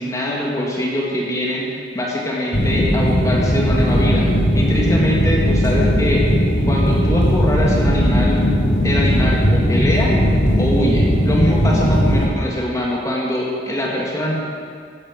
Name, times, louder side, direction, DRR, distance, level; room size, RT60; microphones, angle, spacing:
voice 1, 0.0-4.3 4.5-6.3 6.7-8.4 8.8-10.2 10.6-14.4, equal, 20° left, -3 dB, 2.0 m, -22 dB
sound 1, 2.5-12.3, equal, 90° left, 3.4 m, -17 dB
15.5 x 10.5 x 6.4 m, 2.2 s
head